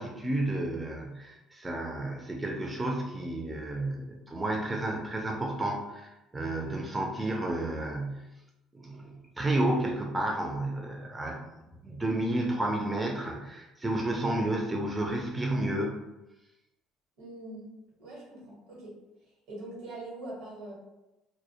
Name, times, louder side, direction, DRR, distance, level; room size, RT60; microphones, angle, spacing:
voice 1, 0.0-8.3 8.7-11.4 11.7-16.0, right 1 dB, 15° right, 0 dB, 0.4 m, -31 dB
voice 2, 17.2-17.7 18.0-18.9 19.5-20.7, right 2 dB, 80° right, -4 dB, 1.0 m, -42 dB
2.2 x 2.1 x 2.7 m, 0.99 s
supercardioid pair, 85°, 0 cm